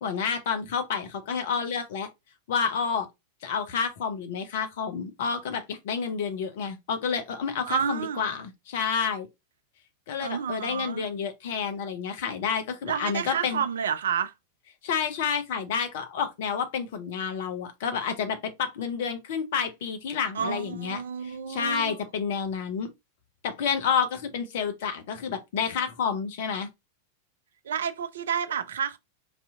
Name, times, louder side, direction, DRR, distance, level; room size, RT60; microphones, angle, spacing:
voice 1, 0.0-2.1 2.5-3.1 3.4-9.3 10.1-13.6 14.8-22.9 23.4-26.7, left 6 dB, 55° left, 0.7 m, -29 dB
voice 2, 7.7-8.2 10.2-11.0 12.9-14.3 20.3-22.0 27.6-29.0, right 7 dB, 65° right, 0.4 m, -30 dB
4.1 x 2.7 x 2.3 m
figure-of-eight pair, 90°, 0 cm